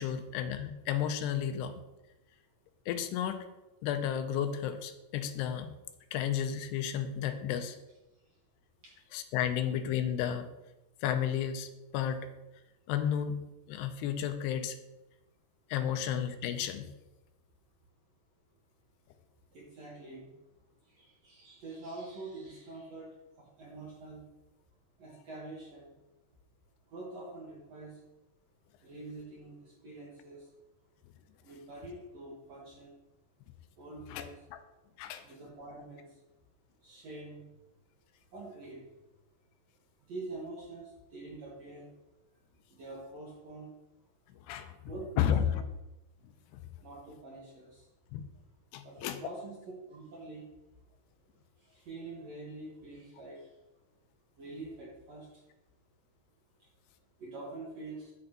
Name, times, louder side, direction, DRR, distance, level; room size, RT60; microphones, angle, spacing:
voice 1, 0.0-1.8 2.9-3.4 3.8-5.7 6.1-7.8 9.1-10.5 11.0-12.3 12.9-13.4 13.7-14.8 15.7-16.9 34.1-34.3 34.5-34.6 35.0-35.2 44.5-44.8 45.2-45.6 46.5-46.6 48.1-48.3 48.7-49.2, left 9 dB, 85° left, 9 dB, 2.7 m, -32 dB
voice 2, 19.5-20.2 20.9-23.1 23.4-24.2 25.0-25.9 26.9-27.9 28.8-30.4 31.4-32.9 33.8-34.4 35.2-36.1 36.8-37.5 38.3-38.8 40.1-41.9 42.7-43.7 44.8-45.5 46.8-47.8 48.8-49.6 49.9-50.5 51.7-53.4 54.4-55.3 57.2-58.1, right 2 dB, 60° right, -4 dB, 1.9 m, -45 dB
9.0 x 8.6 x 2.9 m, 0.98 s
omnidirectional pair, 4.6 m